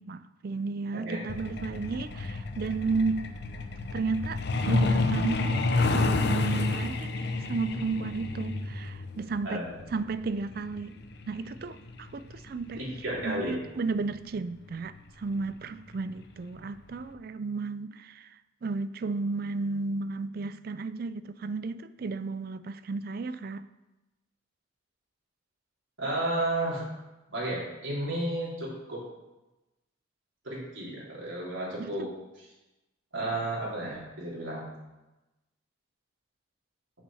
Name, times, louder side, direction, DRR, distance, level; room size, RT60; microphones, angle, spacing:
voice 1, 0.0-3.3 3.9-9.6 9.9-11.0 11.3-12.8 13.2-18.4 18.6-23.7 31.8-31.9, right 4 dB, 50° right, 13 dB, 0.4 m, -33 dB
voice 2, 0.9-1.2 9.4-9.7 12.8-13.6 26.0-26.8 27.3-29.0 30.4-32.1 32.4-32.5 33.1-34.7, right 1 dB, 80° right, -5 dB, 3.5 m, -32 dB
Truck, 1.3-13.6 14.8-15.0 15.4-15.6 15.9-16.2 16.5-16.6 17.1-17.2, left 3 dB, 55° left, 0.7 m, -30 dB
7.2 x 5.5 x 7.0 m, 1.0 s
head